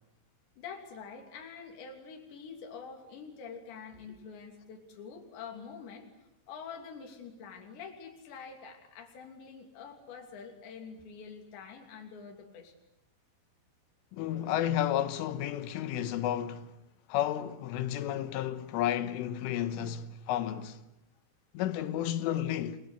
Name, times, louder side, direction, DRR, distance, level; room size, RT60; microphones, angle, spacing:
voice 1, 0.6-6.1 6.5-12.7, left 6 dB, 65° left, 5.3 m, -46 dB
voice 2, 14.1-16.7 17.1-20.8 21.5-22.8, left 11 dB, 90° left, 3.7 m, -32 dB
29.5 x 21.5 x 8.2 m
omnidirectional pair, 5.6 m